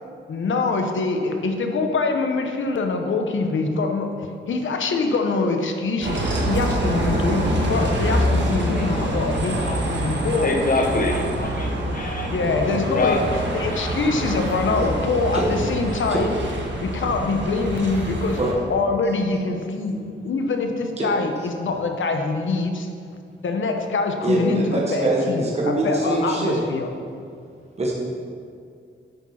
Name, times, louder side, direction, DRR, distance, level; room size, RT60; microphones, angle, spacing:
voice 1, 0.3-4.1 4.5-10.5 12.3-13.2 13.5-16.3 16.8-18.4 18.7-20.0 20.2-22.9 23.4-26.9, left 3 dB, 85° left, 4 dB, 1.0 m, -24 dB
Bus, 6.0-18.5, right 1 dB, 70° right, 1.4 m, -25 dB
voice 2, 9.5-9.8 10.4-12.3 12.9-13.2, left 3 dB, 45° left, 1 dB, 1.2 m, -25 dB
voice 3, 24.2-26.6 27.8-27.9, right 2 dB, 35° right, -3 dB, 1.3 m, -23 dB
8.9 x 6.2 x 5.9 m, 2.3 s
wide cardioid pair, 170°, 20 cm